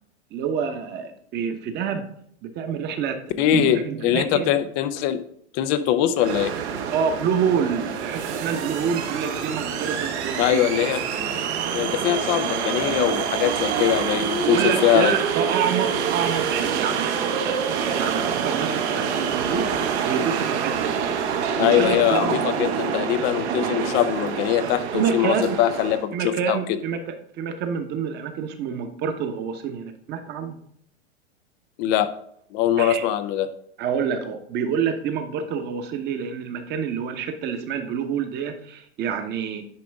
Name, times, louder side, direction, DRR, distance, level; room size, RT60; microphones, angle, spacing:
voice 1, 0.3-2.1 2.4-4.5 6.9-10.7 14.4-17.1 17.4-19.7 20.0-21.1 21.6-22.4 24.9-25.6 26.1-30.6 32.8-33.0 33.8-39.7, right 7 dB, 25° right, 7 dB, 1.0 m, -27 dB
voice 2, 3.4-5.2 5.5-6.5 10.4-11.0 11.7-15.2 21.6-26.1 26.5-26.6 31.8-32.1 32.5-33.5, left 11 dB, 25° left, 11 dB, 0.4 m, -22 dB
sound 1, 6.2-26.0, right 7 dB, 60° right, 1.2 m, -26 dB
10.0 x 5.0 x 3.5 m, 0.69 s
hypercardioid pair, 135°, 37 cm